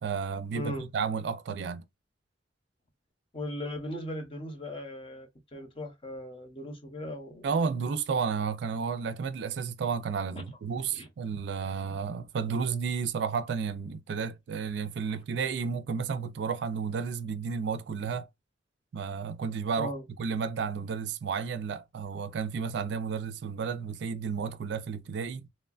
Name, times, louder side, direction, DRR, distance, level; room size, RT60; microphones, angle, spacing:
voice 1, 0.0-1.8 7.4-18.3 18.9-19.9 20.2-25.5, right 6 dB, 65° right, 0.3 m, -32 dB
voice 2, 0.5-0.9 3.3-7.5 10.9-11.1 19.8-20.0, left 1 dB, 30° left, 0.7 m, -38 dB
3.0 x 2.2 x 2.3 m
head